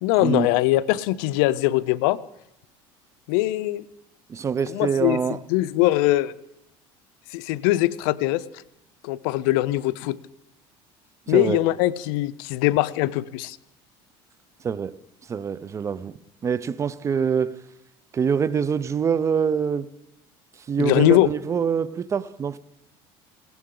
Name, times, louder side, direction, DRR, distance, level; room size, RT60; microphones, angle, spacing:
voice 1, 0.0-2.2 3.3-3.8 4.7-6.3 7.3-8.4 9.0-10.2 11.3-13.6 20.8-21.3, left 17 dB, 80° left, 0.6 m, -22 dB
voice 2, 4.3-5.4 11.3-11.6 14.6-14.9 15.3-16.1 16.4-17.6 18.1-19.9 20.7-22.6, right 6 dB, 25° right, 0.5 m, -24 dB
19.5 x 17.0 x 3.8 m
cardioid pair, 125°, 12 cm